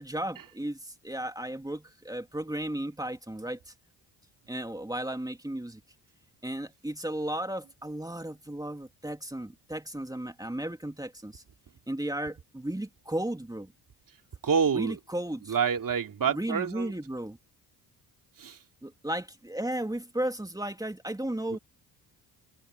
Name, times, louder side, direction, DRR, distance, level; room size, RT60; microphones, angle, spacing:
voice 1, 0.0-3.7 4.5-5.8 6.4-11.4 11.9-13.7 14.7-15.6 16.3-17.4 18.8-21.6, right 1 dB, 10° right, 3.0 m, -34 dB
voice 2, 14.4-15.0 15.5-16.9 18.4-18.6 21.5-21.6, right 6 dB, 50° right, 2.9 m, -27 dB
open air
supercardioid pair, 65°, 42 cm